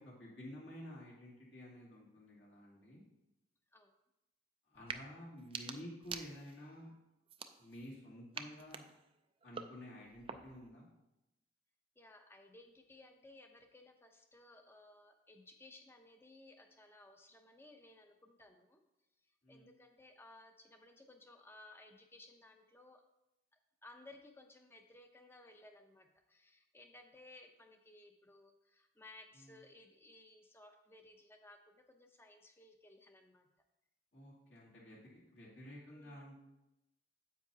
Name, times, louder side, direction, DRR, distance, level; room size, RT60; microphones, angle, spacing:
voice 1, 0.0-3.0 4.7-6.9 7.6-8.8 9.4-10.9 19.4-19.7 29.3-29.6 34.1-36.4, equal, 65° left, -6 dB, 2.6 m, -52 dB
sound 1, 4.8-5.0 5.4-6.7 7.3-8.0 8.3-10.7, right 6 dB, 30° right, 0.4 m, -48 dB
voice 2, 12.0-18.8 19.5-23.0 23.5-33.5 35.9-36.2, left 2 dB, 10° left, 5 dB, 0.7 m, -59 dB
9.4 x 8.1 x 2.8 m, 0.92 s
head